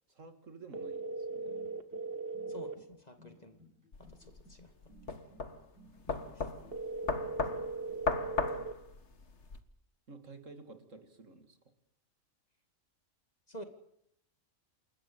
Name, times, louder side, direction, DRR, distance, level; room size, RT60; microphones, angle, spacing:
voice 1, 0.1-1.6 7.3-8.4 10.1-11.6, right 3 dB, 70° right, 8 dB, 2.8 m, -53 dB
sound 1, 0.7-2.7 6.7-8.7, right 3 dB, 45° right, 1.9 m, -39 dB
sound 2, 1.2-8.1, right 1 dB, 10° right, 7.6 m, -60 dB
voice 2, 2.5-3.6 4.1-4.7 6.1-6.5 13.5-13.6, equal, 30° left, 7 dB, 2.4 m, -50 dB
sound 3, 3.9-9.6, left 4 dB, 55° left, 1.9 m, -37 dB
28.5 x 13.5 x 8.8 m, 0.74 s
omnidirectional pair, 1.4 m